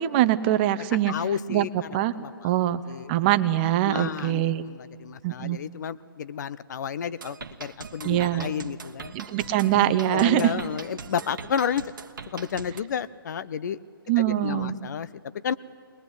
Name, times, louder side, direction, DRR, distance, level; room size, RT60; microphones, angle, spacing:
voice 1, 0.0-1.1 1.5-1.7 1.9-2.1 2.4-2.8 3.1-4.6 5.2-5.6 8.0-8.5 9.1-10.6 14.1-14.8, right 13 dB, 25° right, 13 dB, 0.7 m, -23 dB
voice 2, 1.1-1.7 2.1-2.3 2.9-3.1 3.9-9.1 10.1-11.8 12.3-13.8 14.2-15.1 15.4-15.5, left 7 dB, 50° left, 16 dB, 0.6 m, -31 dB
sound 1, 7.2-12.8, right 5 dB, 60° right, 1.2 m, -41 dB
21.0 x 20.5 x 8.1 m, 2.1 s
figure-of-eight pair, 135°, 12 cm